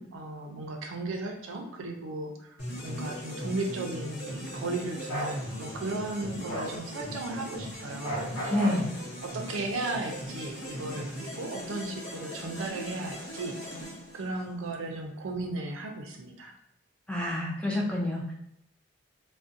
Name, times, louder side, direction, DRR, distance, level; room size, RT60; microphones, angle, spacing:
voice 1, 0.0-2.6 2.8-8.6 9.2-13.6 14.1-16.5, right 2 dB, 80° right, 3 dB, 0.4 m, -35 dB
sound 1, 2.6-14.7, equal, 50° left, 0.9 m, -39 dB
Bark, 5.1-5.3 6.5-6.7 8.0-8.8, right 1 dB, 80° left, 0.7 m, -33 dB
voice 2, 8.5-8.9 17.1-18.3, left 1 dB, 5° left, -3 dB, 0.3 m, -28 dB
2.4 x 2.1 x 2.5 m, 0.78 s
head